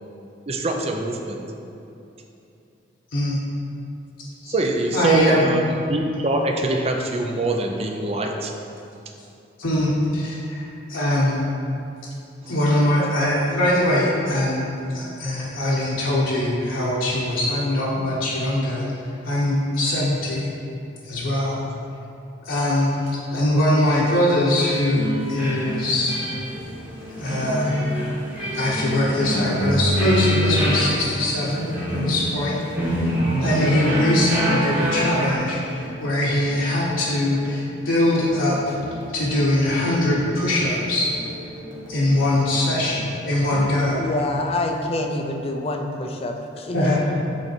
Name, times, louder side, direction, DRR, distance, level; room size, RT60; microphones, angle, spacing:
voice 1, 0.5-1.4 4.5-8.5 12.4-12.5, right 2 dB, 30° right, 2 dB, 0.5 m, -24 dB
voice 2, 4.9-5.7 9.6-11.5 12.5-14.6 14.9-18.9 19.2-20.5 21.0-21.6 22.4-26.2 27.2-27.9 28.5-33.1 33.4-38.8 39.1-41.1 41.9-44.0 46.7-47.4, left 1 dB, 90° left, -7 dB, 1.0 m, -22 dB
sound 1, 24.6-35.4, equal, 10° right, 1.2 m, -25 dB
sound 2, 26.4-44.8, equal, 75° right, 1.2 m, -40 dB
voice 3, 43.5-46.9, left 2 dB, 30° left, 3 dB, 0.5 m, -27 dB
8.2 x 3.3 x 4.4 m, 2.8 s
head